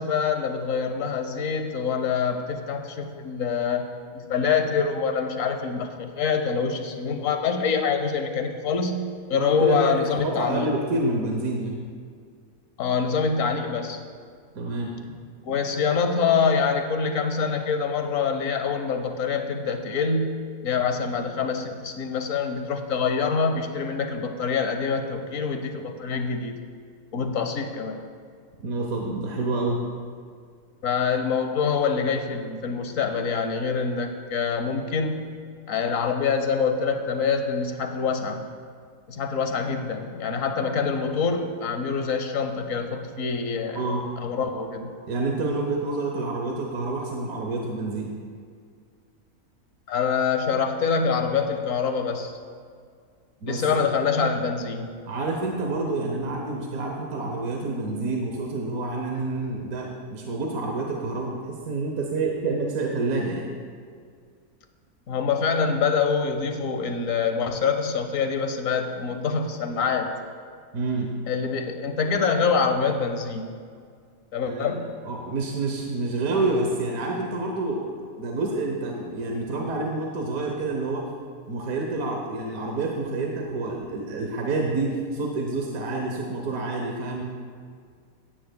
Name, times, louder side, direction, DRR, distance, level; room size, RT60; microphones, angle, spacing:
voice 1, 0.0-10.7 12.8-14.0 15.4-26.6 27.1-28.0 30.8-35.3 35.7-38.4 39.1-43.8 44.2-44.9 49.9-52.4 53.5-54.9 65.1-70.1 71.3-73.5 74.3-74.9, left 5 dB, 65° left, 6 dB, 1.2 m, -25 dB
voice 2, 9.3-11.8 14.6-14.9 28.6-29.8 43.7-44.0 45.1-48.1 53.4-53.8 55.1-63.5 70.7-71.1 74.5-74.7 75.1-77.9 78.2-81.0 81.5-87.2, right 2 dB, 70° right, 0 dB, 1.4 m, -28 dB
16.0 x 10.0 x 2.2 m, 2.1 s
omnidirectional pair, 1.5 m